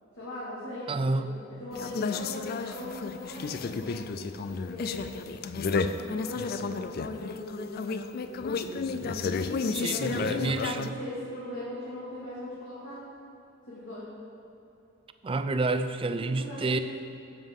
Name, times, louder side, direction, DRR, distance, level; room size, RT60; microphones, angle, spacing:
voice 1, 0.1-1.2 1.6-4.2 4.5-5.0 5.9-9.2 9.8-13.0 13.7-14.1 16.3-16.8, left 1 dB, 70° left, -9 dB, 2.2 m, -40 dB
voice 2, 0.9-1.4 9.7-10.9 15.2-16.8, right 3 dB, 25° right, 10 dB, 0.4 m, -29 dB
sound 1, 1.7-10.9, left 4 dB, 50° left, 0.4 m, -32 dB
12.5 x 7.9 x 3.7 m, 2.8 s
head